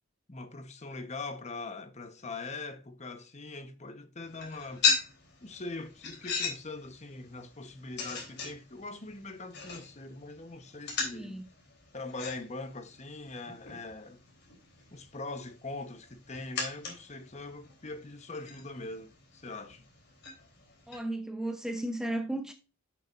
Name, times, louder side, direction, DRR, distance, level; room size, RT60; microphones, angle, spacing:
voice 1, 0.3-4.9 5.4-11.4 11.9-14.2 14.9-19.9, left 3 dB, 35° left, 1.0 m, -42 dB
sound 1, 4.2-21.0, left 5 dB, 55° left, 3.4 m, -38 dB
voice 2, 11.1-11.4 20.9-22.5, right 1 dB, 5° right, 0.7 m, -34 dB
10.5 x 6.8 x 2.5 m
head